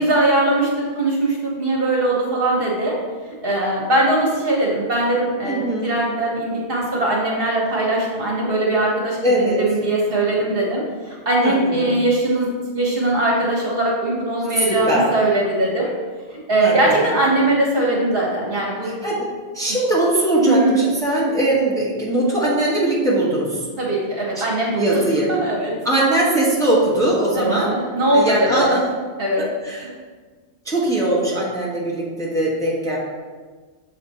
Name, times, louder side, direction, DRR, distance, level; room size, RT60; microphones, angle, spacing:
voice 1, 0.0-3.0 3.2-15.9 16.5-18.9 20.4-20.8 23.8-24.8 25.3-25.7 27.3-28.7 29.2-29.5, right 1 dB, 55° right, -3 dB, 1.4 m, -20 dB
voice 2, 5.5-5.9 9.2-9.6 11.4-11.9 14.6-15.1 16.6-17.2 18.8-19.3 19.5-23.7 24.8-25.3 25.8-27.7 28.1-28.8 29.6-29.8 30.6-33.0, right 1 dB, 5° left, -6 dB, 1.3 m, -20 dB
7.0 x 4.2 x 4.2 m, 1.4 s
omnidirectional pair, 1.1 m